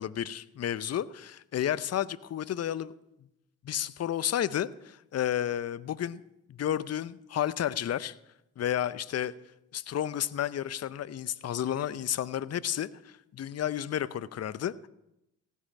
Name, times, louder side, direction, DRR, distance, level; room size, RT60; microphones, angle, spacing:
voice 1, 0.0-2.9 3.6-6.2 6.5-8.2 8.6-9.3 9.7-14.9, left 10 dB, 40° left, 17 dB, 0.6 m, -32 dB
16.0 x 5.5 x 8.7 m, 0.86 s
hypercardioid pair, 50°, 41 cm